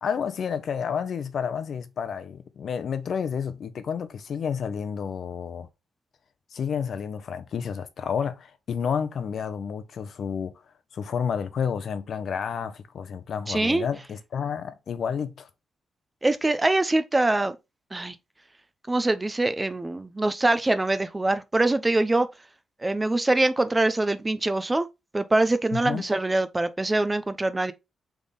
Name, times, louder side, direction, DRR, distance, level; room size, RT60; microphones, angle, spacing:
voice 1, 0.0-5.7 6.5-10.5 10.9-15.5 25.7-26.0, left 7 dB, 60° left, 0.6 m, -30 dB
voice 2, 13.5-13.9 16.2-17.6 17.9-18.2 18.9-22.3 22.8-24.9 25.1-27.7, right 2 dB, 15° right, 0.4 m, -24 dB
3.6 x 3.4 x 4.0 m
cardioid pair, 110°, 0 cm